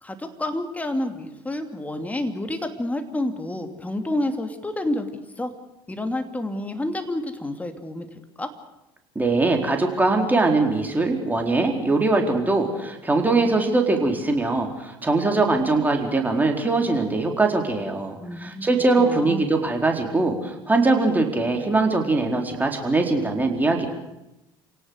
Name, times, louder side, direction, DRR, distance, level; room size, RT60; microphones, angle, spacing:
voice 1, 0.0-5.1 5.4-5.5 5.9-8.1 8.4-8.5 18.2-18.7 19.0-19.4, left 1 dB, 10° left, 6 dB, 2.9 m, -29 dB
voice 2, 9.1-23.9, right 3 dB, 15° right, 2 dB, 4.5 m, -22 dB
27.5 x 18.0 x 6.7 m, 0.93 s
figure-of-eight pair, 65°, 12 cm